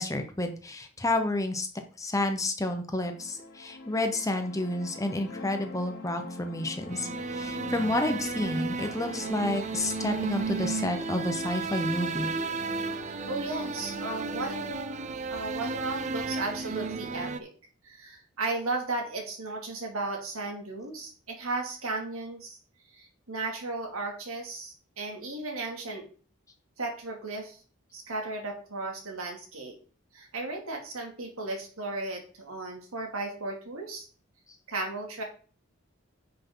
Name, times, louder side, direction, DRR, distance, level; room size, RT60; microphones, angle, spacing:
voice 1, 0.0-1.7 2.0-12.3, left 1 dB, 15° left, 6 dB, 1.0 m, -30 dB
sound 1, 3.1-14.7, left 1 dB, 45° left, 1.8 m, -43 dB
sound 2, 6.9-17.4, right 4 dB, 35° right, 0.5 m, -33 dB
voice 2, 13.3-17.5 17.8-22.6 22.9-26.0 26.8-27.6 27.9-29.8 30.1-34.1 34.7-35.2, right 2 dB, 85° right, 1 dB, 2.6 m, -35 dB
9.8 x 6.0 x 3.9 m, 0.40 s
head